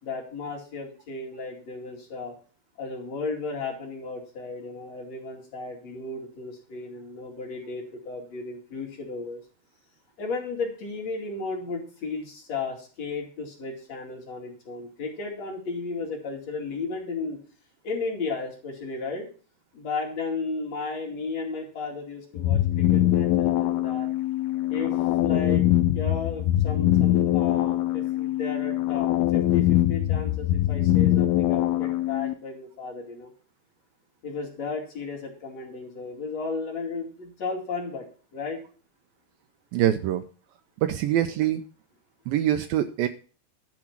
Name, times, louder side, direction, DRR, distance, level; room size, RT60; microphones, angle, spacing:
voice 1, 0.0-2.3 2.8-9.4 10.2-17.4 17.8-19.3 19.7-24.1 24.7-25.6 25.9-33.3 34.2-38.1 38.3-38.6, left 4 dB, 45° left, -1 dB, 3.3 m, -34 dB
sound 1, 22.4-32.3, left 13 dB, 80° left, 2.7 m, -23 dB
voice 2, 39.7-40.2 40.8-41.6 42.3-43.1, right 12 dB, 80° right, 9 dB, 2.2 m, -24 dB
12.0 x 5.0 x 7.2 m, 0.39 s
omnidirectional pair, 4.5 m